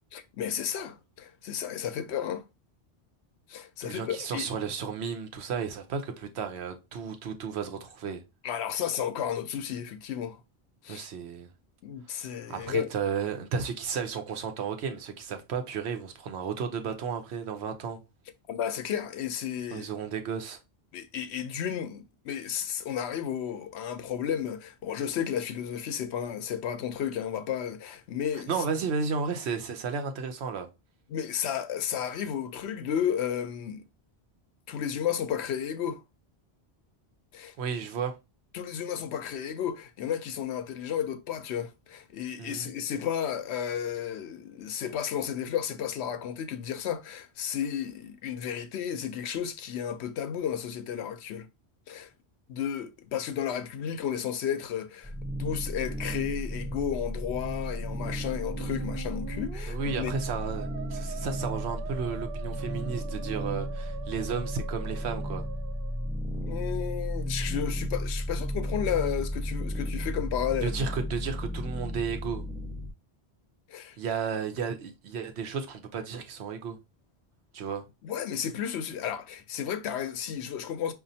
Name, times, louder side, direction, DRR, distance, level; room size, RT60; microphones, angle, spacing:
voice 1, 0.1-2.4 3.5-4.5 8.4-10.4 10.8-11.1 11.8-12.9 18.5-19.9 20.9-28.5 31.1-33.8 34.7-36.0 37.3-37.5 38.5-51.5 51.9-52.1 52.5-55.1 55.4-60.1 66.4-70.7 73.7-74.0 78.0-80.9, left 9 dB, 85° left, 0.9 m, -33 dB
voice 2, 3.8-8.2 10.9-11.5 12.5-18.0 19.7-20.6 28.3-30.7 37.6-38.2 42.4-42.7 59.7-65.4 70.6-72.4 74.0-76.8 77.5-77.8, right 6 dB, 85° right, 1.0 m, -33 dB
sound 1, 55.0-72.9, equal, 5° right, 0.7 m, -34 dB
Musical instrument, 58.1-66.2, right 7 dB, 65° right, 0.7 m, -43 dB
5.0 x 2.6 x 2.7 m
omnidirectional pair, 1.1 m